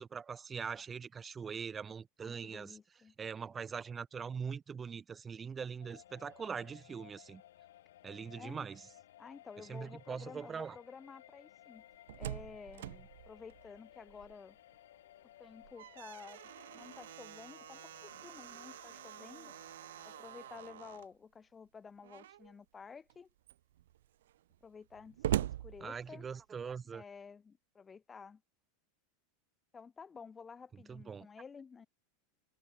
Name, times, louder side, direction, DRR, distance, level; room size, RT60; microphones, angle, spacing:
voice 1, 0.0-2.8 3.2-7.4 8.0-8.8 9.7-10.8 25.8-27.0 30.9-31.3, right 6 dB, 20° right, 0.5 m, -42 dB
voice 2, 2.2-3.2 8.4-8.7 9.2-11.8 12.2-14.6 15.4-16.4 16.7-19.5 20.0-23.3 24.6-26.3 26.9-28.4 29.7-31.9, left 5 dB, 15° left, 2.7 m, -52 dB
sound 1, 5.8-21.0, left 13 dB, 90° left, 1.9 m, -60 dB
Slam, 11.8-14.6 14.9-15.0 15.5-21.1 22.0-22.6 23.1-23.2 23.4-26.5, right 13 dB, 90° right, 0.3 m, -43 dB
supercardioid pair, 145°, 0 cm